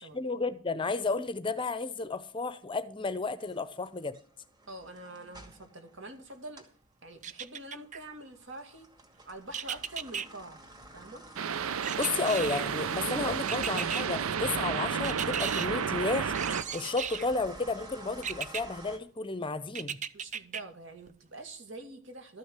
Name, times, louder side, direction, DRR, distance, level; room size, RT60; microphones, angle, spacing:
voice 1, 0.1-4.1 12.0-16.3 16.7-20.0, left 3 dB, 25° left, 0.7 m, -32 dB
sound 1, 3.4-6.8 7.2-19.0, right 2 dB, 20° right, 2.2 m, -50 dB
voice 2, 4.7-6.7 7.0-8.9 9.3-10.6 10.9-11.2 20.1-22.4, right 2 dB, 60° right, 2.3 m, -45 dB
sound 2, 7.2-8.0 9.5-10.3 11.8-12.8 13.5-14.0 15.0-15.7 16.3-17.3 18.2-18.6 19.8-20.6 21.1-21.2, right 7 dB, 35° right, 0.5 m, -36 dB
sound 3, 11.3-16.6, right 7 dB, 85° right, 0.5 m, -31 dB
13.0 x 6.3 x 8.1 m
head